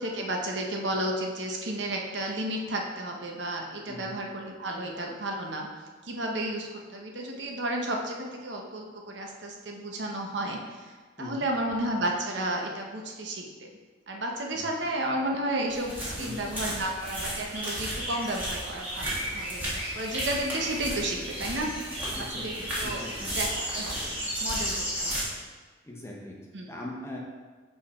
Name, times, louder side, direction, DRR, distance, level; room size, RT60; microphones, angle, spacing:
voice 1, 0.0-5.7 6.0-10.9 11.2-13.7 14.1-19.7 19.9-21.7 22.2-23.0 23.3-23.5 23.7-25.2 26.5-26.7, right 1 dB, 80° right, 1 dB, 0.9 m, -32 dB
sound 1, 15.7-25.2, equal, 10° right, 1.7 m, -33 dB
voice 2, 22.1-23.3 25.8-26.4 26.7-27.2, left 1 dB, 15° left, -2 dB, 0.9 m, -40 dB
5.4 x 4.6 x 4.2 m, 1.4 s
head